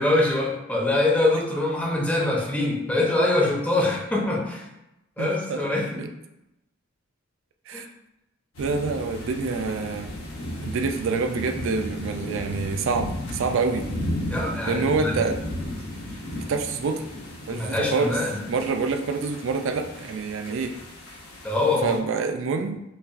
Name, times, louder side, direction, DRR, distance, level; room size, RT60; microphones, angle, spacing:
voice 1, 0.0-4.7 5.2-6.1 7.7-7.9 14.3-15.3 17.5-18.4 21.4-22.0, left 2 dB, 5° left, -2 dB, 0.6 m, -24 dB
voice 2, 5.2-6.1 7.7-7.9 8.6-10.1 10.6-13.8 14.7-15.4 16.5-17.0 17.5-18.1 18.5-20.7 21.8-22.8, right 4 dB, 65° right, 6 dB, 0.4 m, -27 dB
sound 1, 8.5-22.0, left 1 dB, 75° left, 1.0 m, -35 dB
5.4 x 2.4 x 2.4 m, 0.90 s
head